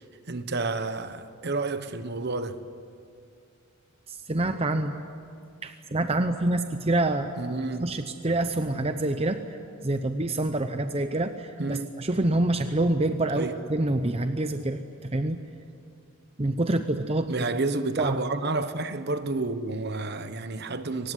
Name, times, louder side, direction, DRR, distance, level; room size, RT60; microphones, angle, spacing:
voice 1, 0.0-2.6 7.4-7.9 11.6-11.9 13.3-13.6 17.3-21.1, right 3 dB, 50° right, 1.1 m, -30 dB
voice 2, 4.1-4.9 5.6-7.3 7.8-9.4 9.8-15.4 16.4-17.3 18.0-18.2, right 2 dB, 30° right, 0.8 m, -26 dB
24.0 x 19.5 x 9.9 m
head